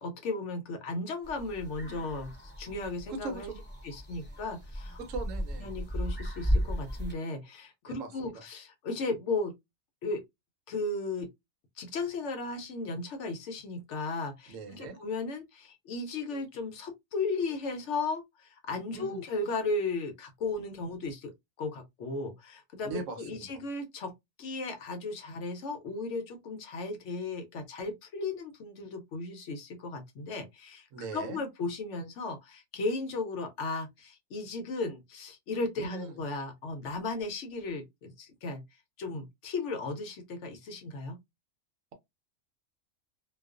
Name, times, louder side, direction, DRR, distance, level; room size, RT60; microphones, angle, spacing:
voice 1, 0.0-3.5 3.8-5.0 5.6-9.5 10.0-10.2 10.7-11.3 11.8-21.3 21.6-24.1 24.4-30.9 31.1-41.2, left 3 dB, 65° left, 0.8 m, -35 dB
sound 1, 1.2-7.1, equal, 10° left, 0.8 m, -35 dB
voice 2, 3.1-3.6 5.0-5.7 7.9-8.4 14.5-15.0 18.9-19.2 22.8-23.2 23.5-23.6 30.9-31.4 35.8-36.1, right 3 dB, 75° right, 1.0 m, -39 dB
2.3 x 2.3 x 2.3 m
omnidirectional pair, 1.4 m